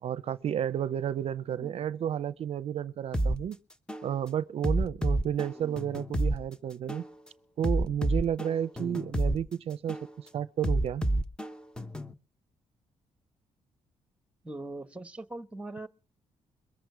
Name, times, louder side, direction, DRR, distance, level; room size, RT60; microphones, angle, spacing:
voice 1, 0.0-3.6 4.0-7.0 7.6-11.0, right 9 dB, 60° right, 0.6 m, -32 dB
sound 1, 3.1-3.4 3.9-4.1 4.6-6.4 6.9-7.1 7.6-9.4 9.9-10.1 10.6-12.1, right 1 dB, 5° left, 1.0 m, -29 dB
voice 2, 14.4-15.9, right 2 dB, 10° right, 1.3 m, -41 dB
23.0 x 7.8 x 4.6 m
cardioid pair, 95°, 12 cm